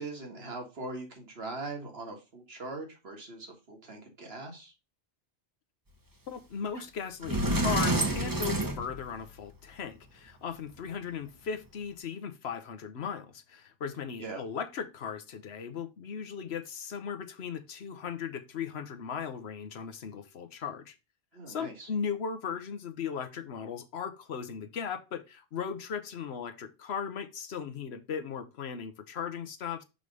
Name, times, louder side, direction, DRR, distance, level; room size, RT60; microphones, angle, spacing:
voice 1, 0.0-4.7 14.2-14.4 21.3-21.9, right 3 dB, 70° right, 1.9 m, -41 dB
voice 2, 6.3-20.9 21.5-29.8, left 7 dB, 90° left, 1.1 m, -37 dB
Sliding door, 6.8-6.9 7.2-9.5, right 1 dB, 20° right, 0.8 m, -29 dB
6.6 x 3.3 x 5.3 m
omnidirectional pair, 1.1 m